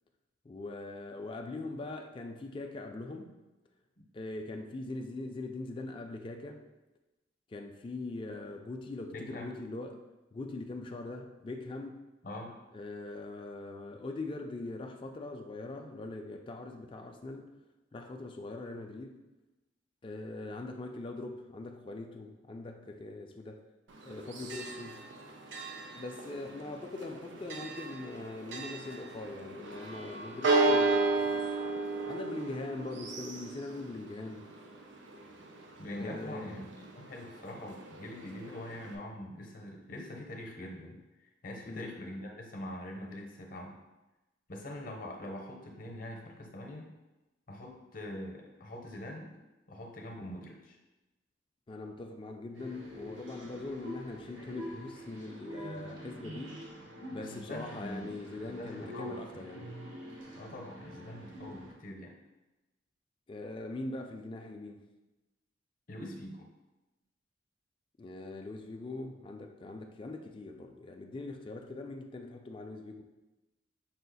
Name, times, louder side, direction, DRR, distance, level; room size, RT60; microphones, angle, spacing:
voice 1, 0.4-3.3 4.1-6.6 7.5-10.0 10.3-12.0 12.7-17.5 17.9-19.2 20.0-23.6 24.0-25.1 25.9-31.6 32.1-34.5 35.9-36.7 41.6-42.0 51.7-56.6 57.1-59.7 63.3-64.8 68.0-73.0, left 2 dB, 25° left, 3 dB, 0.3 m, -42 dB
voice 2, 9.1-9.5 12.2-12.5 35.8-43.8 44.5-46.9 47.5-49.3 49.7-50.8 57.1-58.2 58.5-59.4 60.3-62.1 65.9-66.5, left 1 dB, 45° left, 1 dB, 0.7 m, -43 dB
Church bell, 23.9-39.0, right 3 dB, 75° right, 0.5 m, -35 dB
sound 1, 52.5-61.7, equal, 90° right, 1.0 m, -46 dB
5.5 x 2.4 x 4.0 m, 1.0 s
head